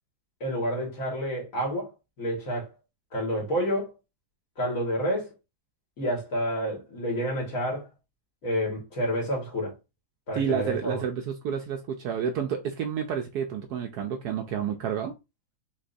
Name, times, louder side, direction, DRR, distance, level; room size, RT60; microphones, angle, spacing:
voice 1, 0.4-1.9 2.2-2.7 3.1-3.9 4.6-5.3 6.0-7.9 8.4-9.7 10.3-11.0, equal, 45° left, 2.3 m, -29 dB
voice 2, 10.3-15.1, right 7 dB, 70° right, 1.1 m, -30 dB
5.3 x 3.6 x 2.7 m
omnidirectional pair, 2.0 m